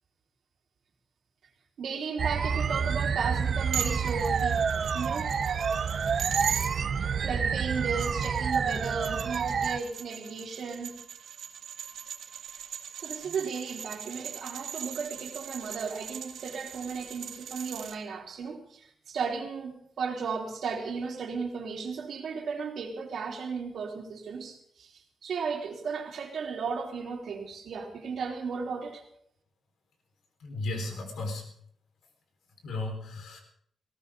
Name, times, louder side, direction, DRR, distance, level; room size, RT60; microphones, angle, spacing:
voice 1, 1.8-4.6 4.9-5.3 7.2-10.9 13.0-29.0, right 5 dB, 60° right, 1 dB, 3.5 m, -35 dB
sound 1, 2.2-9.8, right 6 dB, 45° right, 0.7 m, -28 dB
sound 2, 3.7-6.7 7.8-18.0, right 8 dB, 85° right, 1.6 m, -39 dB
voice 2, 30.4-31.4 32.6-33.4, left 2 dB, 70° left, 4 dB, 4.3 m, -34 dB
19.5 x 18.0 x 3.8 m, 0.66 s
wide cardioid pair, 170°, 0 cm